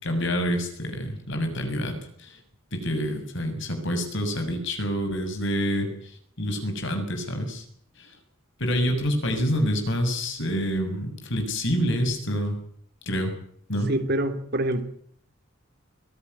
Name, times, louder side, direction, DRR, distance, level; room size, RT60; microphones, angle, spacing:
voice 1, 0.0-2.4 2.7-5.9 6.4-7.6 8.0-8.1 8.6-12.6 13.1-13.3 13.7-13.9, equal, 60° left, 6 dB, 7.1 m, -27 dB
voice 2, 13.9-14.8, right 1 dB, 50° right, 9 dB, 3.0 m, -25 dB
23.0 x 17.5 x 9.8 m, 0.63 s
head